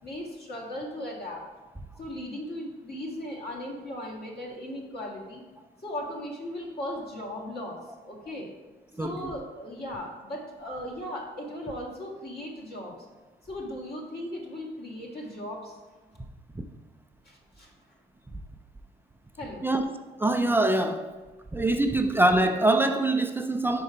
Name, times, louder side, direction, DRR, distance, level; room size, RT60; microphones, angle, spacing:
voice 1, 0.0-1.4 2.0-5.4 5.8-7.8 8.0-8.5 8.9-13.0 13.4-15.7 17.3-17.7 19.4-19.7, left 1 dB, 50° left, -1 dB, 1.8 m, -37 dB
voice 2, 20.2-21.1 21.5-23.8, right 2 dB, 10° right, 6 dB, 0.4 m, -24 dB
5.4 x 4.6 x 5.0 m, 1.2 s
cardioid pair, 90°, 20 cm